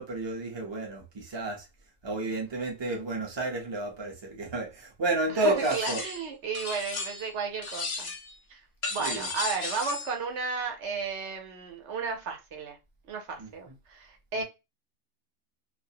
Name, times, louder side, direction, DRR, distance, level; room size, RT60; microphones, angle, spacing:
voice 1, 0.0-1.6 2.0-6.0 8.9-9.3 13.4-13.5, right 2 dB, 30° right, 0.5 m, -31 dB
voice 2, 5.3-8.1 8.5-8.6 8.9-12.8 13.1-14.4, right 5 dB, 65° right, 0.9 m, -33 dB
sound 1, 5.6-6.3 6.5-7.3 7.6-8.3 8.8-10.2, left 4 dB, 55° left, 0.6 m, -35 dB
2.4 x 2.0 x 2.7 m
omnidirectional pair, 1.4 m